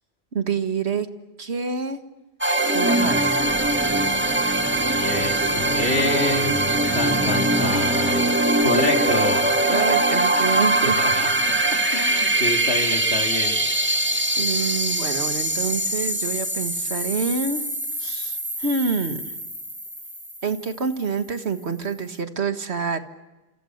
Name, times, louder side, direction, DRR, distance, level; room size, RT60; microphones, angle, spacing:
voice 1, 0.3-1.1 1.4-2.0 2.7-3.4 8.7-9.2 9.7-11.0 14.4-17.6 18.0-19.2 20.4-23.0, right 5 dB, 90° right, 8 dB, 2.0 m, -27 dB
sound 1, 2.4-20.9, right 1 dB, 10° right, 2.2 m, -22 dB
voice 2, 4.8-8.4 8.6-9.5 10.8-13.6, left 2 dB, 80° left, 3 dB, 3.7 m, -27 dB
30.0 x 27.5 x 6.6 m, 1.1 s
omnidirectional pair, 1.1 m